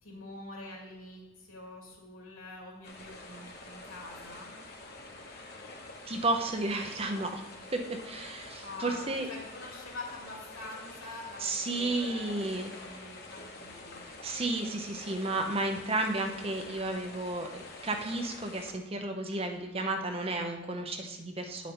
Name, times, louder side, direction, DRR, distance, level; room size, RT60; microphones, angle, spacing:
voice 1, 0.0-4.5 8.6-14.0, left 2 dB, 90° left, -2 dB, 2.7 m, -46 dB
sound 1, 2.8-18.7, left 2 dB, 50° left, 1.0 m, -47 dB
voice 2, 6.1-7.4 7.7-9.3 11.4-12.7 14.2-21.7, right 2 dB, 25° right, 5 dB, 0.6 m, -32 dB
9.6 x 5.1 x 4.3 m, 1.1 s
head